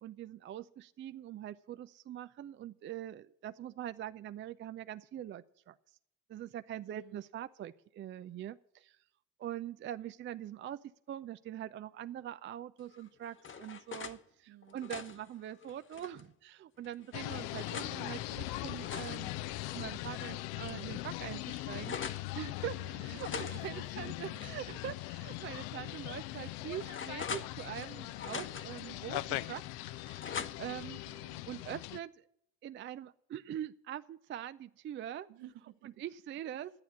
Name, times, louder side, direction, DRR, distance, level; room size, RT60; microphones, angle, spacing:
voice 1, 0.0-5.7 6.3-9.0 9.4-10.8 11.1-19.3 19.7-22.0 22.3-29.6 29.9-31.0 31.5-32.2 32.6-35.3 36.0-36.7, right 11 dB, 30° right, 12 dB, 0.5 m, -43 dB
voice 2, 6.9-7.2 14.5-14.8 22.7-24.8 31.1-31.4 35.3-36.0 36.5-36.7, right 13 dB, 65° right, 7 dB, 1.5 m, -54 dB
sound 1, 12.9-14.2 14.6-16.3 16.8-18.0 18.5-20.3 20.6-20.7 21.0-22.3 23.2-25.0 25.3-25.5 26.1-27.9 28.2-28.9 29.3-30.8, left 6 dB, 30° left, 1.1 m, -45 dB
sound 2, 17.1-32.0, left 16 dB, 60° left, 0.7 m, -40 dB
11.5 x 9.2 x 7.1 m, 0.73 s
hypercardioid pair, 65°, 41 cm